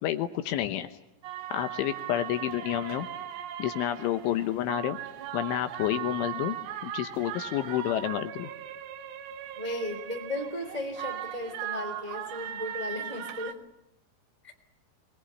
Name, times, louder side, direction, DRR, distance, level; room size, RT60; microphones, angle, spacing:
voice 1, 0.0-0.9 1.5-3.1 3.6-5.0 5.3-6.6 6.8-8.5, left 12 dB, 75° left, 9 dB, 3.2 m, -29 dB
sound 1, 1.2-13.5, right 11 dB, 70° right, 3.1 m, -38 dB
voice 2, 9.5-13.6 14.4-14.5, left 1 dB, 15° right, 4 dB, 1.3 m, -35 dB
23.5 x 21.0 x 9.9 m, 0.87 s
omnidirectional pair, 6.0 m